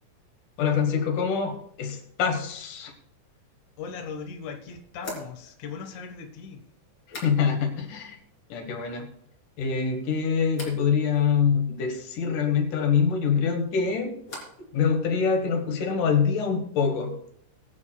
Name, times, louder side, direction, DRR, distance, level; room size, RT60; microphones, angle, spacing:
voice 1, 0.6-2.9 7.2-8.2 8.5-9.1 9.6-14.2 14.7-17.1, left 6 dB, 90° left, 4 dB, 3.0 m, -25 dB
sound 1, 3.7-3.8 5.0-7.8 8.1-8.7 9.0-9.7 10.5-10.9 13.3-14.7 15.0-15.6, left 2 dB, 40° left, 4.3 m, -45 dB
voice 2, 3.8-6.6, left 5 dB, 70° left, 3 dB, 2.7 m, -38 dB
21.5 x 11.0 x 2.3 m, 0.71 s
omnidirectional pair, 3.5 m